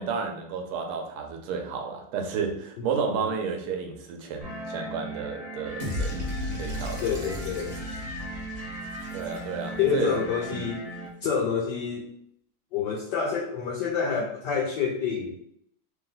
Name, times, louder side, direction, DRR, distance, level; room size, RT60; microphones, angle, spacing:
voice 1, 0.0-7.1 9.1-10.7, right 6 dB, 80° right, 3 dB, 1.5 m, -32 dB
voice 2, 2.8-3.3 7.0-7.8 9.8-10.9 11.2-12.1 12.7-15.4, left 6 dB, 80° left, -1 dB, 0.9 m, -28 dB
sound 1, 4.4-11.1, right 1 dB, 60° left, 0.4 m, -38 dB
sound 2, 5.8-9.9, left 1 dB, 35° right, 0.7 m, -35 dB
3.3 x 3.1 x 3.8 m, 0.71 s
omnidirectional pair, 2.4 m